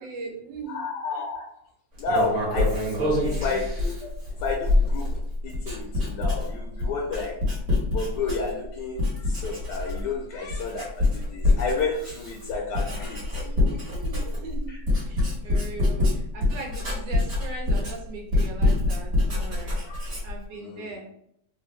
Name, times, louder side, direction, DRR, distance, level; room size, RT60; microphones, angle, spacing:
voice 1, 0.0-0.9 2.8-3.6 13.4-14.8 15.0-19.8 20.2-21.1, right 3 dB, 80° right, 0 dB, 1.5 m, -39 dB
voice 2, 0.7-1.5 2.0-2.8 3.2-4.1 4.4-5.1 5.4-7.4 7.9-13.5 15.4-15.5 19.8-20.1 20.6-20.9, left 4 dB, 75° left, 0 dB, 1.2 m, -31 dB
Writing, 2.0-8.7 9.0-10.2 10.5-20.4, left 2 dB, 45° right, 1.5 m, -25 dB
3.5 x 2.5 x 3.1 m, 0.73 s
omnidirectional pair, 2.0 m